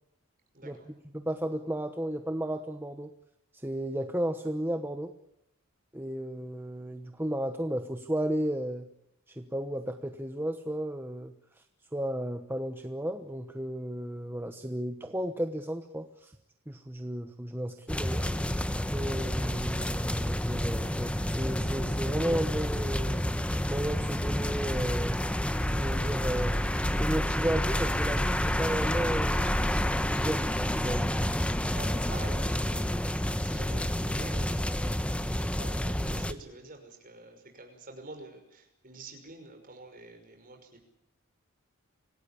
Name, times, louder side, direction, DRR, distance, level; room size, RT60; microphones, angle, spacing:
voice 1, 0.5-0.9 31.7-40.8, right 2 dB, 40° right, 4 dB, 5.8 m, -48 dB
voice 2, 1.1-3.1 3.5-5.1 5.9-8.9 9.3-11.3 11.9-16.3 16.7-18.2 18.9-23.2 23.7-25.2 25.8-26.6 26.9-29.4 30.1-31.1, right 1 dB, 10° right, 6 dB, 1.1 m, -33 dB
sound 1, 17.9-36.3, equal, 5° left, 0.9 m, -29 dB
26.0 x 17.5 x 8.6 m, 0.83 s
head